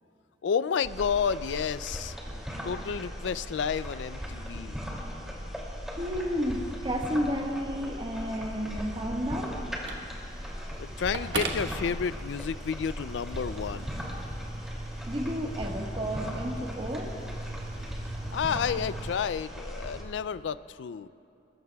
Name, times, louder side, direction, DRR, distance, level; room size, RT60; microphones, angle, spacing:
voice 1, 0.4-2.2 2.6-4.8 10.8-14.0 18.3-21.1, left 6 dB, 90° left, 17 dB, 0.4 m, -31 dB
sound 1, 0.8-20.0, equal, 5° right, 2.6 m, -38 dB
voice 2, 6.0-9.6 15.1-17.2, equal, 30° right, 1 dB, 1.5 m, -32 dB
sound 2, 7.1-19.1, right 2 dB, 60° right, 2.3 m, -44 dB
Telephone, 7.8-12.5, right 3 dB, 85° right, 1.3 m, -40 dB
22.0 x 21.0 x 2.3 m, 2.8 s
head